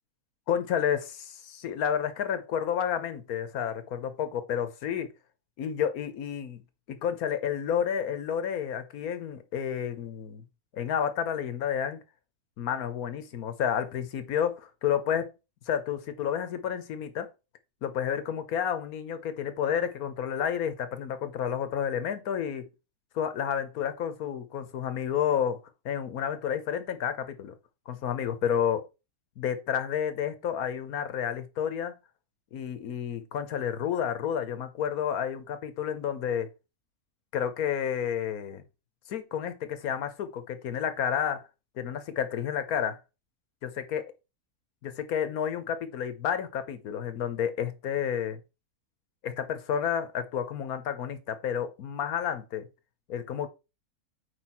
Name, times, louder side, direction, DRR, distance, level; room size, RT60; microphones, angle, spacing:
voice 1, 0.5-5.1 5.6-6.6 6.9-10.4 10.7-12.0 12.6-15.3 15.7-17.3 17.8-22.7 23.1-27.5 27.9-28.9 29.4-31.9 32.5-36.5 37.3-38.6 39.1-41.4 41.8-43.0 43.6-44.0 44.8-48.4 49.2-52.7 53.1-53.5, left 8 dB, 75° left, 1.4 m, -30 dB
8.1 x 4.9 x 4.3 m
omnidirectional pair, 1.6 m